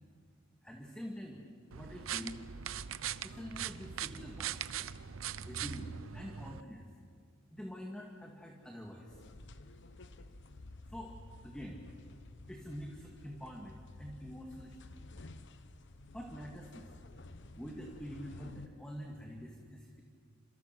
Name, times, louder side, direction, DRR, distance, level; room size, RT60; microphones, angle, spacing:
voice 1, 0.6-2.4 3.2-4.6 5.4-6.9 7.5-9.2 10.9-11.8 12.5-15.0 16.1-17.0 17.6-20.0, equal, 5° left, 0 dB, 2.1 m, -46 dB
sound 1, 1.7-6.6, right 9 dB, 90° right, 0.7 m, -41 dB
sound 2, 9.1-18.7, left 2 dB, 60° left, 1.2 m, -52 dB
30.0 x 27.0 x 6.1 m, 2.1 s
head